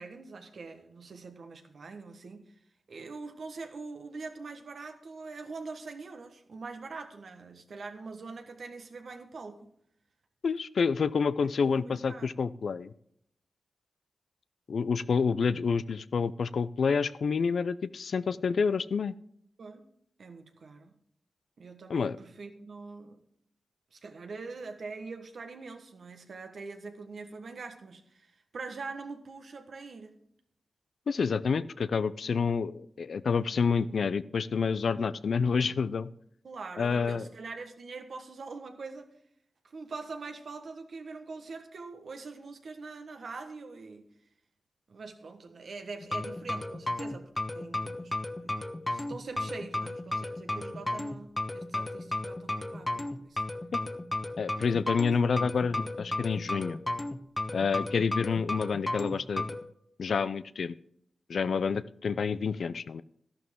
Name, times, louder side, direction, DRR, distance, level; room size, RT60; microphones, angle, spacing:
voice 1, 0.0-2.5 2.9-9.7 11.6-12.3 19.6-19.9 20.2-20.9 21.6-23.2 23.9-30.2 36.4-39.1 39.7-44.1 44.9-48.1 48.4-48.5 48.9-53.4 54.8-54.9, right 4 dB, 75° right, 1.4 m, -43 dB
voice 2, 10.4-12.9 14.7-19.1 21.9-22.2 31.1-36.1 36.8-37.3 53.7-53.8 54.4-56.8 57.5-59.5 60.0-60.7 61.3-63.0, left 5 dB, 75° left, 0.4 m, -28 dB
sound 1, 46.0-59.6, left 2 dB, 25° left, 1.1 m, -34 dB
12.5 x 11.5 x 3.7 m
cardioid pair, 50°, 0 cm